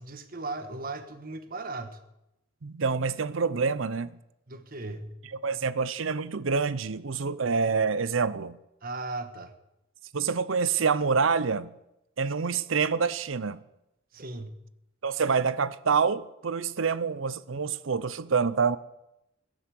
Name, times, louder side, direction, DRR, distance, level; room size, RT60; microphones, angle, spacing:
voice 1, 0.0-2.0 4.5-5.1 8.8-9.5 14.1-14.6, right 2 dB, 45° right, 1.4 m, -37 dB
voice 2, 2.6-4.1 5.4-8.6 10.1-11.7 12.2-13.6 15.0-18.8, right 5 dB, 80° right, 0.7 m, -27 dB
17.5 x 10.5 x 7.7 m
head